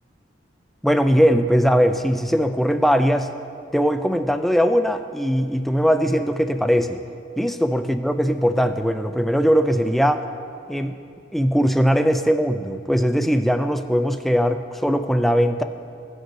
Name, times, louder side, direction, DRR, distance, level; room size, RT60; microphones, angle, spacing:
voice 1, 0.8-3.3 3.7-7.0 7.4-10.2 10.7-11.0 11.3-15.6, equal, ahead, 8 dB, 0.3 m, -20 dB
17.0 x 6.6 x 3.2 m, 2.5 s
head